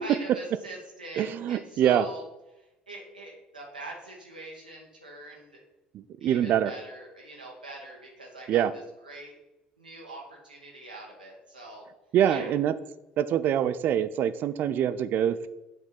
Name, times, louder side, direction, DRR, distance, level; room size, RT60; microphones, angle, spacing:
voice 1, 0.0-2.2 2.5-5.6 6.2-9.3 9.8-11.8 12.3-12.5, right 2 dB, 85° right, -2 dB, 1.3 m, -43 dB
voice 2, 1.2-2.1 5.9-6.7 8.5-8.7 12.1-12.7 13.2-15.5, right 10 dB, 45° right, 14 dB, 0.4 m, -25 dB
8.2 x 4.3 x 3.8 m, 0.95 s
figure-of-eight pair, 60°, 5 cm